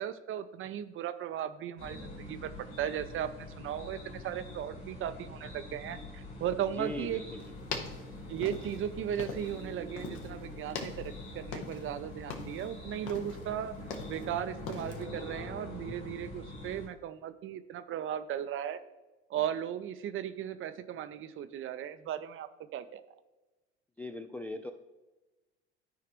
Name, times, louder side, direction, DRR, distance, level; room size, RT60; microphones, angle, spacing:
voice 1, 0.0-2.5 2.8-7.2 8.3-13.7 14.0-18.8 19.3-23.0, right 10 dB, 40° right, 11 dB, 0.7 m, -36 dB
sound 1, 1.8-16.9, left 2 dB, 75° left, 2.9 m, -45 dB
voice 2, 6.8-7.4 24.0-24.7, left 2 dB, 5° left, 5 dB, 0.4 m, -39 dB
sound 2, 7.4-9.7 10.0-10.3 10.7-11.9 12.2-12.7 13.1-14.3 14.7-15.0, left 5 dB, 60° left, 1.4 m, -41 dB
13.0 x 4.8 x 3.1 m, 1.1 s
hypercardioid pair, 75°, 34 cm